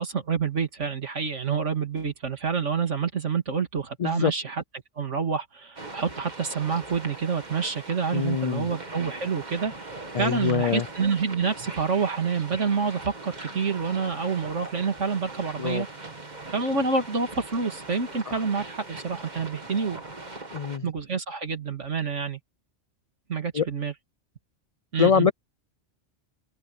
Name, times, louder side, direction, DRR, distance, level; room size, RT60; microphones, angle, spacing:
voice 1, 0.0-4.6 5.0-9.7 10.2-15.9 16.5-20.0 20.8-22.4 23.3-23.9 24.9-25.3, right 5 dB, 80° right, 2.8 m, -28 dB
voice 2, 4.0-4.3 8.1-8.7 10.1-10.9 15.6-15.8 18.3-18.4 20.5-20.9 23.5-23.7 25.0-25.3, left 7 dB, 70° left, 0.3 m, -24 dB
sound 1, 5.8-20.8, right 2 dB, 35° right, 2.2 m, -41 dB
omnidirectional pair, 1.2 m